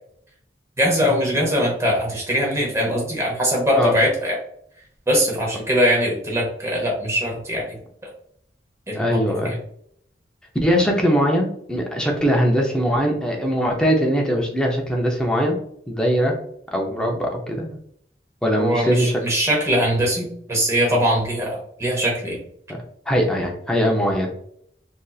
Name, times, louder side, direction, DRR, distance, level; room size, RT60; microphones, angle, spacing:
voice 1, 0.8-4.4 5.1-7.8 8.9-9.5 18.6-22.4, equal, 15° right, -2 dB, 1.0 m, -21 dB
voice 2, 8.9-9.5 10.6-15.6 15.9-16.4 16.7-17.8 18.4-19.2 22.7-24.3, equal, 5° left, 0 dB, 0.6 m, -21 dB
3.4 x 2.7 x 2.4 m, 0.68 s
head